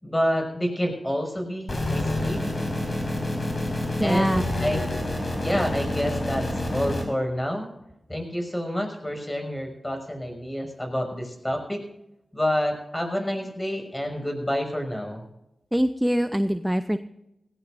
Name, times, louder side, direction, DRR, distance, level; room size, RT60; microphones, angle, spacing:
voice 1, 0.0-2.7 4.0-4.8 5.4-7.7 8.1-11.8 12.3-15.2, equal, 20° left, 3 dB, 6.0 m, -28 dB
sound 1, 1.7-7.0, left 1 dB, 40° left, 5.4 m, -28 dB
voice 2, 4.0-4.4 15.7-17.0, equal, 5° right, 10 dB, 0.7 m, -23 dB
18.5 x 18.0 x 2.6 m, 0.90 s
cardioid pair, 55°, 0 cm